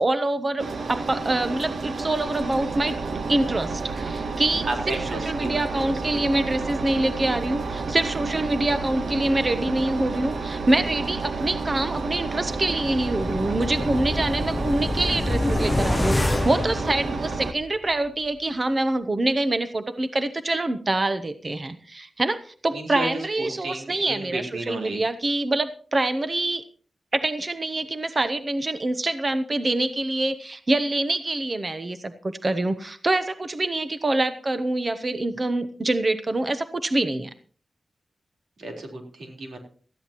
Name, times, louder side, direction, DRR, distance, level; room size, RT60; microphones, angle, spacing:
voice 1, 0.0-3.0 3.3-4.9 5.2-26.6 27.1-37.3, right 2 dB, 30° right, 10 dB, 0.8 m, -25 dB
Engine, 0.6-17.5, right 4 dB, 60° right, 1.1 m, -30 dB
voice 2, 4.6-5.9 22.7-25.0 38.6-39.6, right 2 dB, 90° right, 2 dB, 4.0 m, -32 dB
sound 1, 12.6-17.7 18.1-18.2, left 1 dB, 20° left, 0.5 m, -27 dB
19.0 x 14.0 x 3.0 m, 0.43 s
wide cardioid pair, 145°, 0 cm